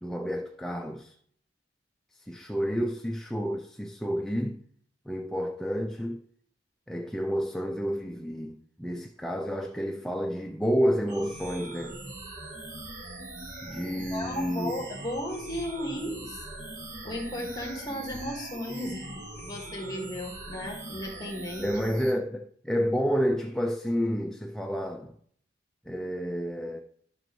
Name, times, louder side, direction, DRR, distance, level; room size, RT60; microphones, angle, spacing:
voice 1, 0.0-1.2 2.2-4.6 5.1-6.2 6.9-12.0 13.6-14.7 21.6-25.1 25.9-26.8, equal, 5° left, 0.4 m, -30 dB
sound 1, 11.1-22.1, right 1 dB, 45° right, 1.6 m, -41 dB
voice 2, 14.1-16.5 17.0-21.7, left 1 dB, 20° left, 1.8 m, -35 dB
12.0 x 6.1 x 3.1 m
head